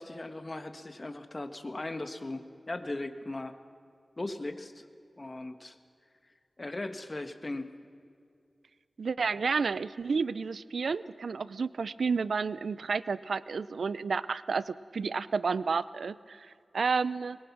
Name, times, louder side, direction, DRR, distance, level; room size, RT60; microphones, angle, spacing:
voice 1, 0.0-3.5 4.2-4.8 5.2-5.8 6.6-7.7, left 2 dB, 35° left, 8 dB, 1.6 m, -38 dB
voice 2, 9.0-17.4, right 5 dB, 85° right, 17 dB, 0.5 m, -31 dB
24.0 x 22.0 x 6.1 m, 2.3 s
wide cardioid pair, 70°, 0 cm